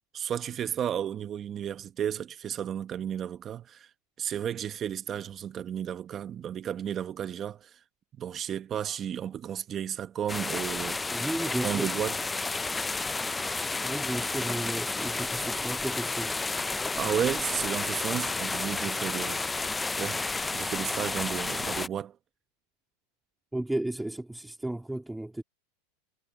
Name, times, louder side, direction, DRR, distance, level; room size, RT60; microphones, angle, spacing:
voice 1, 0.1-3.9 4.2-7.8 8.2-11.2 11.6-12.2 17.0-20.2 20.5-22.2, right 9 dB, 30° right, 1.0 m, -33 dB
sound 1, 10.3-21.9, left 3 dB, 10° left, 0.3 m, -31 dB
voice 2, 11.1-11.9 13.8-16.4 23.5-25.4, right 1 dB, 5° right, 2.3 m, -34 dB
supercardioid pair, 120°, 0 cm